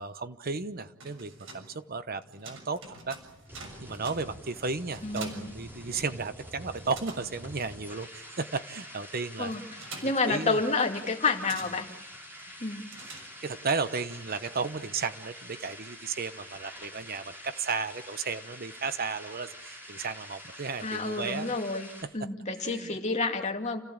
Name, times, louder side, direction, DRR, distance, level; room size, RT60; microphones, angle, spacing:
voice 1, 0.0-3.2 3.8-9.5 10.3-10.6 13.4-21.5 22.6-22.9, right 4 dB, 45° right, 12 dB, 1.0 m, -34 dB
sound 1, 0.8-6.4 6.6-13.7, right 3 dB, 65° right, 6.7 m, -48 dB
sound 2, 2.4-22.0, equal, 10° right, 5.5 m, -47 dB
voice 2, 5.0-5.5 9.4-9.6 10.0-11.9 12.6-12.9 20.8-23.8, left 3 dB, 35° left, 3 dB, 2.5 m, -29 dB
29.5 x 16.0 x 8.8 m, 0.89 s
head